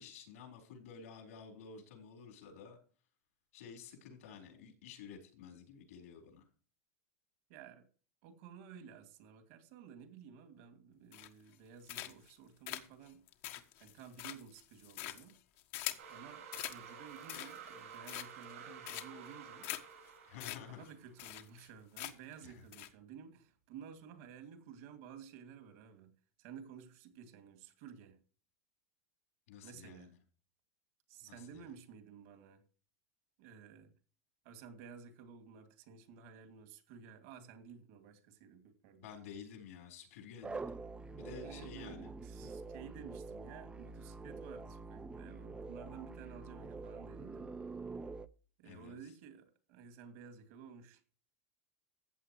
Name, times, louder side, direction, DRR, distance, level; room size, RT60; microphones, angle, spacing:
voice 1, 0.0-2.8 3.5-6.4 20.3-20.8 22.4-22.6 29.5-30.1 31.2-31.6 39.0-40.6 41.2-42.1 42.4-42.5 48.6-49.0, left 6 dB, 80° left, 4.3 m, -51 dB
voice 2, 7.5-7.9 8.2-13.2 13.8-15.4 16.1-19.7 20.7-26.1 26.4-28.2 29.6-30.1 31.1-32.6 33.4-33.9 34.4-39.1 41.4-47.5 48.6-51.0, right 7 dB, 65° right, 2.6 m, -53 dB
sound 1, 11.1-11.5 11.9-12.3 12.7-16.1 16.5-16.8 17.2-17.7 18.0-18.5 18.9-19.3 19.6-19.8 20.1-20.2 20.4-20.6 20.8-20.9 21.2-21.7 22.0-22.3 22.7-22.9, left 15 dB, 65° left, 1.4 m, -43 dB
sound 2, 16.0-21.3, right 7 dB, 85° right, 6.2 m, -52 dB
sound 3, 40.4-48.3, right 3 dB, 15° right, 0.6 m, -46 dB
14.5 x 8.2 x 3.1 m
supercardioid pair, 115°, 8 cm